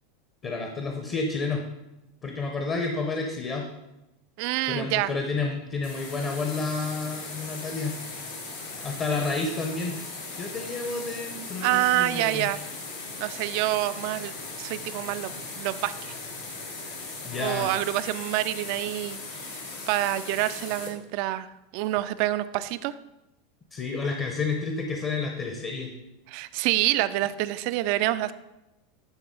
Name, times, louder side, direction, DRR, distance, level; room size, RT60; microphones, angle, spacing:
voice 1, 0.4-1.6 2.2-3.7 4.7-7.9 8.8-10.0 10.4-12.5 17.2-17.7 23.7-25.9, left 4 dB, 35° left, 2 dB, 1.0 m, -30 dB
voice 2, 4.4-5.1 11.6-12.6 13.2-14.3 14.6-16.1 17.4-19.6 19.9-22.9 26.3-28.3, right 15 dB, 60° right, 14 dB, 0.3 m, -27 dB
sound 1, 5.8-20.9, left 3 dB, 80° left, 1.5 m, -38 dB
9.9 x 3.8 x 3.9 m, 0.95 s
hypercardioid pair, 95°, 0 cm